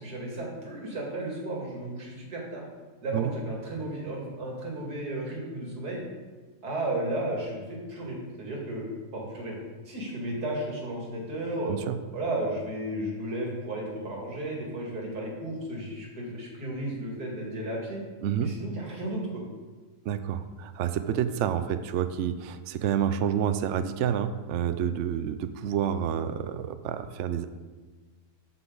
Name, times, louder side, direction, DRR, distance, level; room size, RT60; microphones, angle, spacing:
voice 1, 0.0-2.6 3.0-6.0 6.6-8.9 9.1-9.6 9.8-11.8 12.1-18.0 18.4-19.4, right 1 dB, 85° right, -2 dB, 2.7 m, -34 dB
voice 2, 18.2-18.5 20.0-27.5, right 9 dB, 65° right, 10 dB, 0.7 m, -29 dB
13.5 x 6.0 x 3.9 m, 1.3 s
omnidirectional pair, 1.7 m